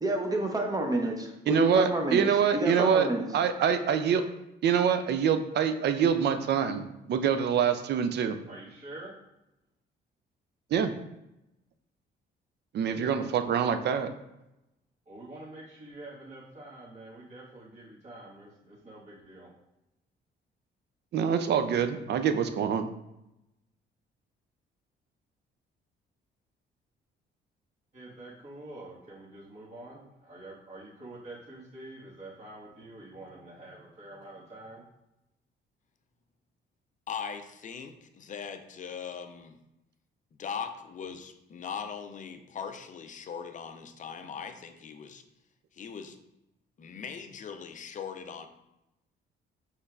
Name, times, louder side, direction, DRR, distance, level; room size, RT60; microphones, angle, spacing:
voice 1, 0.0-3.3, right 1 dB, 20° right, 2 dB, 0.7 m, -29 dB
voice 2, 1.5-3.1 3.3-4.2 4.6-8.4 10.7-10.9 12.7-14.1 21.1-22.9, right 7 dB, 60° right, 8 dB, 0.4 m, -25 dB
voice 3, 8.5-9.1 15.0-19.5 27.9-34.8, right 2 dB, 35° right, -8 dB, 1.5 m, -46 dB
voice 4, 37.1-39.5 40.4-45.2 45.8-46.2 46.8-48.5, left 6 dB, 40° left, 8 dB, 0.5 m, -40 dB
5.5 x 3.2 x 2.4 m, 0.90 s
cardioid pair, 90°, 20 cm